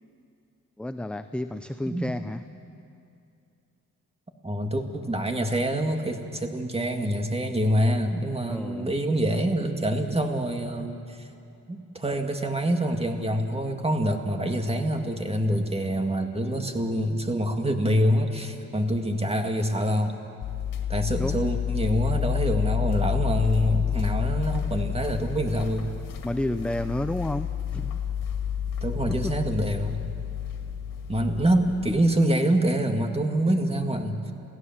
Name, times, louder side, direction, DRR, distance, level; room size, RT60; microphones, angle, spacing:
voice 1, 0.8-2.4 8.5-8.9 21.2-21.4 26.2-28.0 29.1-29.4, left 1 dB, 5° left, 10 dB, 0.5 m, -31 dB
voice 2, 4.4-11.3 11.7-20.2 20.9-25.9 28.8-30.0 31.1-34.3, right 1 dB, 20° right, 5 dB, 2.1 m, -26 dB
sound 1, 20.4-32.0, left 8 dB, 85° left, 2.0 m, -29 dB
28.0 x 16.5 x 7.4 m, 2.6 s
cardioid pair, 85°, 32 cm